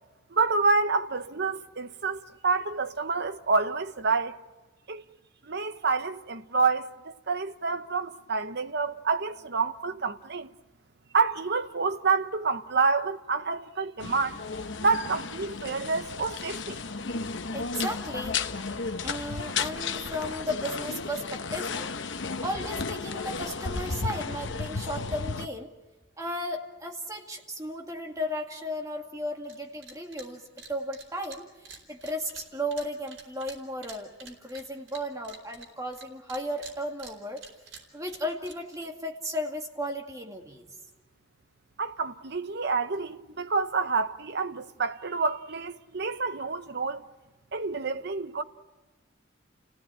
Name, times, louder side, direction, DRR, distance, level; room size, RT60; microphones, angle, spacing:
voice 1, 0.3-4.4 4.9-5.0 5.4-10.5 11.1-14.4 14.8-16.8 41.8-47.0 47.5-48.4, right 4 dB, 60° right, 0.9 m, -28 dB
sound 1, 14.0-25.5, left 4 dB, 65° left, 1.0 m, -33 dB
voice 2, 17.5-18.3 19.0-21.9 22.4-25.7 26.2-30.4 30.7-31.5 31.9-37.4 37.9-40.7, equal, 15° right, 2.1 m, -35 dB
sound 2, 29.4-29.6 29.8-30.3 30.6-36.0 36.3-38.9, right 5 dB, 80° right, 4.6 m, -47 dB
30.0 x 17.0 x 8.8 m
head